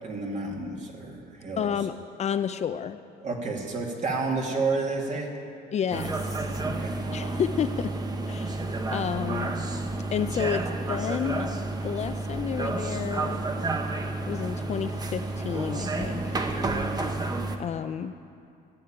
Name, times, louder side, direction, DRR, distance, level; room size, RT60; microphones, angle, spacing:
voice 1, 0.0-1.7 3.2-5.3 6.6-7.0, right 3 dB, 45° right, 0 dB, 2.4 m, -30 dB
voice 2, 1.6-3.0 5.7-6.6 7.1-8.0 8.3-8.7 8.9-9.5 10.1-11.5 11.8-13.4 14.3-16.4 17.6-18.2, left 8 dB, 40° left, 10 dB, 0.5 m, -31 dB
sound 1, 5.9-17.6, right 2 dB, 25° right, 1.1 m, -30 dB
15.0 x 7.2 x 9.0 m, 2.5 s
cardioid pair, 110°, 17 cm